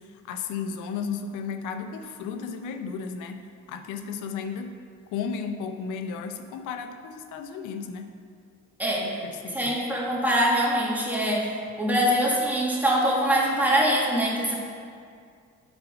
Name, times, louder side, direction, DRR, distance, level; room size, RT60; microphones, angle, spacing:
voice 1, 0.2-4.7 5.1-8.2 9.2-9.7, left 6 dB, 85° left, 7 dB, 0.7 m, -34 dB
voice 2, 8.8-14.5, equal, 5° right, -4 dB, 2.0 m, -24 dB
8.3 x 4.9 x 5.0 m, 2.2 s
supercardioid pair, 65°, 30 cm